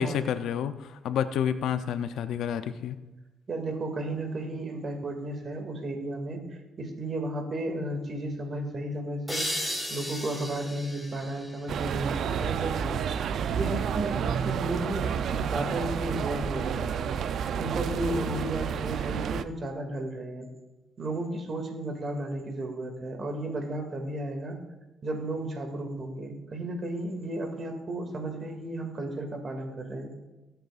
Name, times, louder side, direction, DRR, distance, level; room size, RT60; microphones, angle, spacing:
voice 1, 0.0-3.0, left 8 dB, 80° left, 11 dB, 0.6 m, -29 dB
voice 2, 3.5-6.4 6.8-9.5 9.9-17.1 17.6-20.5 21.0-24.6 25.0-30.1, right 1 dB, 45° right, 3 dB, 2.3 m, -33 dB
sound 1, 9.3-12.7, equal, 5° left, 2.0 m, -36 dB
sound 2, 11.7-19.4, right 7 dB, 65° right, 0.5 m, -30 dB
20.5 x 8.0 x 2.5 m, 1.1 s
cardioid pair, 90°, 0 cm